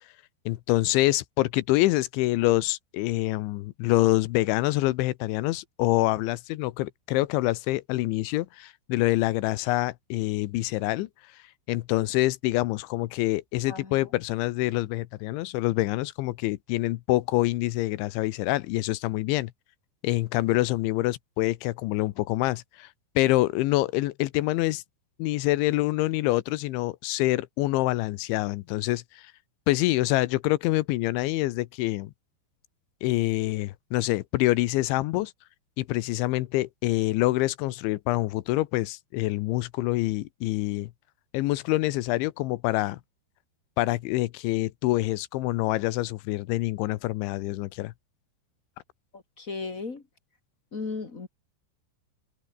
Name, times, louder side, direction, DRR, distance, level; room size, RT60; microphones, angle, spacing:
voice 1, 0.5-11.1 11.7-19.5 20.0-22.9 23.2-24.8 25.2-29.3 29.7-32.1 33.0-35.3 35.8-40.9 41.3-43.0 43.8-47.9, left 18 dB, 90° left, 3.3 m, -26 dB
voice 2, 13.7-14.1 49.1-50.0 50.7-51.3, left 4 dB, 40° left, 1.1 m, -36 dB
omnidirectional pair, 5.3 m